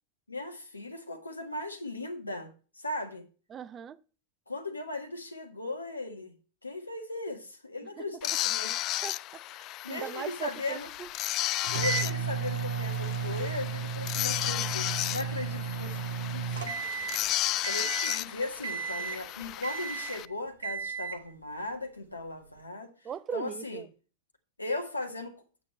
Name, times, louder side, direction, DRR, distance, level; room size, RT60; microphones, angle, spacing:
voice 1, 0.3-3.2 4.5-6.3 6.6-8.7 9.6-10.9 11.6-16.0 16.3-16.7 17.0-17.3 17.7-22.9 23.3-23.8 24.6-25.4, left 2 dB, 80° left, 1.6 m, -38 dB
voice 2, 3.5-4.0 8.0-8.1 9.0-11.1 23.0-23.9, right 8 dB, 25° right, 0.5 m, -39 dB
sound 1, 8.2-20.3, left 15 dB, 35° left, 0.3 m, -34 dB
sound 2, 11.6-17.3 17.6-18.2 18.6-19.3 19.6-20.2 20.6-21.3, right 6 dB, 65° right, 1.2 m, -34 dB
sound 3, 13.9-19.6, left 1 dB, 5° left, 3.2 m, -56 dB
8.8 x 8.3 x 3.2 m
figure-of-eight pair, 90°, 0 cm